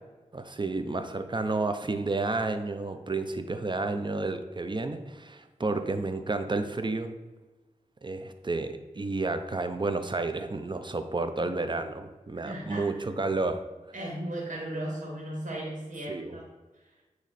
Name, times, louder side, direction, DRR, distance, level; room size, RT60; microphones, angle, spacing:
voice 1, 0.3-7.1 8.0-13.6 16.1-16.4, right 3 dB, 35° right, 8 dB, 0.7 m, -31 dB
voice 2, 12.4-13.0 13.9-16.4 16.8-16.9, right 1 dB, 65° right, -3 dB, 2.1 m, -36 dB
9.2 x 3.2 x 4.2 m, 1.2 s
wide cardioid pair, 60°, 14 cm